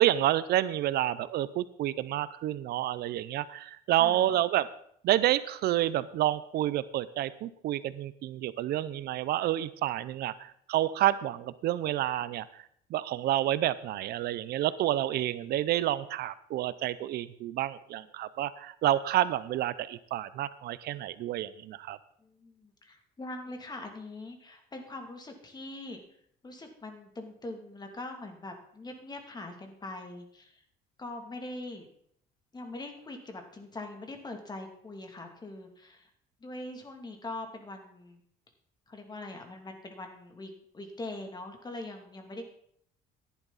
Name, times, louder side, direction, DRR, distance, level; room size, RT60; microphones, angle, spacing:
voice 1, 0.0-4.7 5.0-12.6 12.9-22.0, right 13 dB, 70° right, 16 dB, 0.6 m, -29 dB
voice 2, 3.9-4.3 22.2-26.0 26.4-30.6 31.0-31.9 32.5-36.1 36.4-38.2 38.9-42.5, left 2 dB, 25° left, 4 dB, 2.5 m, -42 dB
14.5 x 11.0 x 4.1 m, 0.67 s
cardioid pair, 110°, 17 cm